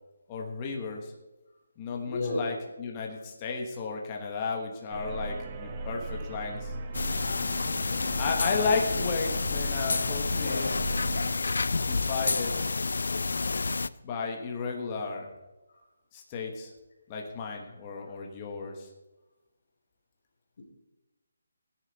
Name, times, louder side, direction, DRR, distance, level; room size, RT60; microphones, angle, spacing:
voice 1, 0.3-1.1 1.8-6.7 8.2-10.9 11.9-12.6 14.0-15.3 16.1-16.7 17.1-18.9, left 4 dB, 15° left, 0 dB, 1.2 m, -33 dB
voice 2, 2.1-2.6 3.0-3.2 5.8-5.9 15.7-15.8 18.0-18.2, left 2 dB, 40° left, -1 dB, 2.9 m, -34 dB
sound 1, 4.9-11.4, right 2 dB, 20° right, 0.8 m, -38 dB
sound 2, 6.9-13.9, left 3 dB, 70° left, 0.4 m, -29 dB
16.0 x 10.0 x 4.1 m, 1.1 s
hypercardioid pair, 175°, 0 cm